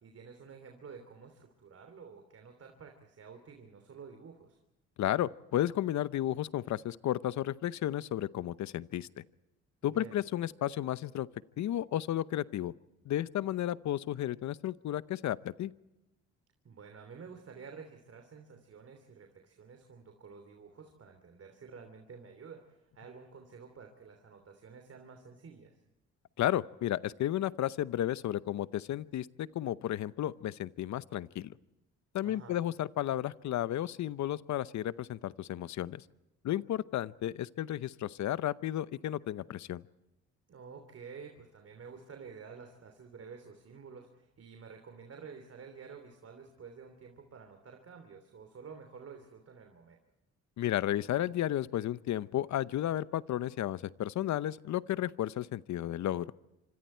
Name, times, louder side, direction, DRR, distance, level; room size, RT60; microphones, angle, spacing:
voice 1, 0.0-4.6 9.8-10.2 16.6-25.8 32.2-32.6 40.5-50.0, right 5 dB, 50° right, 5 dB, 3.2 m, -50 dB
voice 2, 5.0-9.1 9.8-11.3 11.6-12.7 13.0-15.7 26.4-31.5 32.1-36.0 36.4-39.8 50.6-56.3, left 12 dB, 65° left, 17 dB, 0.8 m, -33 dB
26.5 x 26.0 x 4.5 m, 0.95 s
cardioid pair, 90°, 30 cm